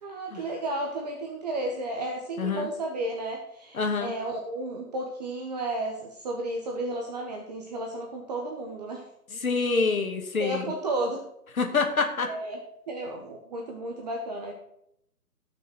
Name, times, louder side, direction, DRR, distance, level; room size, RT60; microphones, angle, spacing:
voice 1, 0.0-9.1 10.4-11.2 12.2-12.6 12.9-14.5, right 2 dB, 25° right, 1 dB, 1.3 m, -33 dB
voice 2, 2.4-2.7 3.7-4.1 9.3-10.7 11.6-12.3, left 4 dB, 60° left, 4 dB, 2.4 m, -26 dB
18.5 x 6.3 x 4.5 m, 0.77 s
figure-of-eight pair, 145°, 47 cm